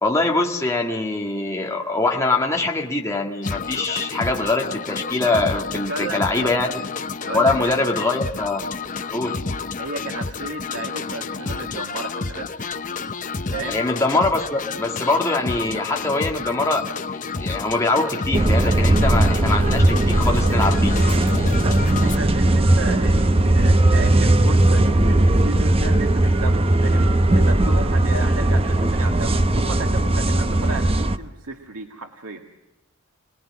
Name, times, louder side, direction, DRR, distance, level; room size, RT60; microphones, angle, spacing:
voice 1, 0.0-6.7 7.3-8.6 9.1-9.4 13.7-16.9 17.4-20.9, left 2 dB, 15° left, 0 dB, 1.9 m, -23 dB
sound 1, 3.4-22.2, left 4 dB, 35° left, 0.8 m, -30 dB
voice 2, 5.7-6.6 7.2-7.8 9.8-12.5 13.5-13.8 21.5-32.4, right 3 dB, 90° right, 3 dB, 1.9 m, -33 dB
sound 2, 18.3-31.2, right 1 dB, 25° right, 0.8 m, -18 dB
27.0 x 20.0 x 7.4 m, 1.0 s
head